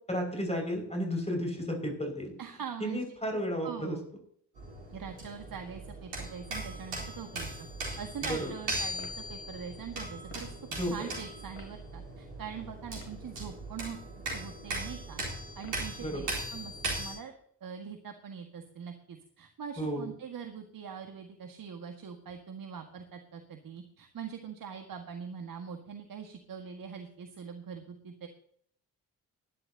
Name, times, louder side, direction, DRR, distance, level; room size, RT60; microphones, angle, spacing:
voice 1, 0.1-2.3 2.8-4.0 8.2-8.6 10.7-11.1 16.0-16.3 19.8-20.1, equal, 15° left, 2 dB, 6.0 m, -33 dB
voice 2, 2.4-3.0 3.6-4.1 4.9-10.5 10.8-14.0 14.3-15.2 15.5-16.2 16.5-17.3 17.6-28.3, right 7 dB, 45° right, 5 dB, 1.8 m, -43 dB
sound 1, 4.6-17.1, right 1 dB, 80° right, 4.3 m, -39 dB
sound 2, 9.0-9.2 10.3-10.5 11.6-11.7 12.8-13.2 14.2-14.6 15.6-15.9, left 3 dB, 65° left, 3.8 m, -51 dB
20.5 x 11.5 x 2.9 m, 0.63 s
figure-of-eight pair, 40°, 47 cm